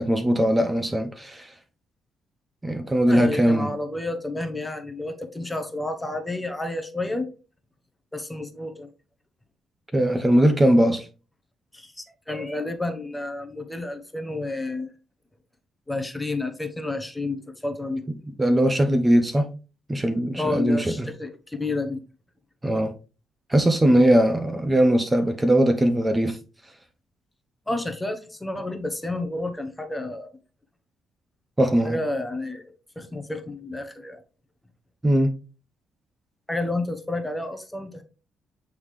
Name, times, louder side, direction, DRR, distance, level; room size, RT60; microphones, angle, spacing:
voice 1, 0.0-1.5 2.6-3.7 9.9-11.1 18.4-19.5 19.9-21.1 22.6-22.9 23.5-26.4 31.6-32.0 35.0-35.3, right 1 dB, 15° right, 0.8 m, -20 dB
voice 2, 3.1-7.3 8.1-8.9 10.8-10.9 11.7-14.9 15.9-18.1 20.3-22.0 27.7-30.3 31.8-34.2 36.5-38.0, left 2 dB, 10° left, 1.0 m, -30 dB
8.4 x 3.6 x 3.2 m
cardioid pair, 90°, 0 cm